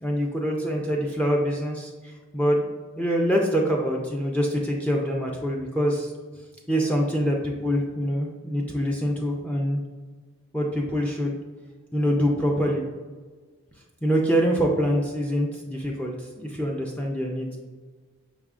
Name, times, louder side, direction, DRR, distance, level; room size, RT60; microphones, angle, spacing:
voice 1, 0.0-2.7 3.0-6.1 6.7-9.8 10.5-11.4 11.9-12.8 14.0-17.6, equal, 5° left, -1 dB, 0.3 m, -25 dB
5.5 x 3.5 x 2.4 m, 1.4 s
head